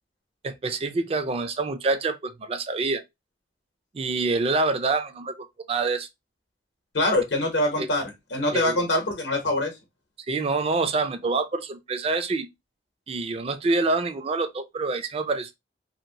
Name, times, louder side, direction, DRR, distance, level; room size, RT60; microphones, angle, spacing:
voice 1, 0.4-3.0 3.9-6.1 7.8-7.9 8.5-8.8 10.3-12.5 13.1-15.5, right 3 dB, 35° right, 0.4 m, -26 dB
voice 2, 6.9-9.7, left 1 dB, 70° left, 0.8 m, -24 dB
2.9 x 2.5 x 2.7 m
head